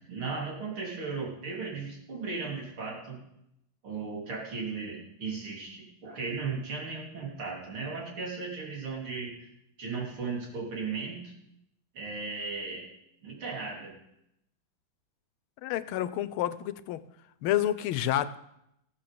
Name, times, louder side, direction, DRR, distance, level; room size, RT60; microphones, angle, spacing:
voice 1, 0.0-3.2 3.8-9.3 9.8-11.3 11.9-12.9 13.2-13.9, right 4 dB, 85° right, -2 dB, 4.2 m, -36 dB
voice 2, 15.6-17.0 17.4-18.4, left 12 dB, 85° left, 16 dB, 1.5 m, -29 dB
15.5 x 7.4 x 6.8 m, 0.82 s
omnidirectional pair, 2.3 m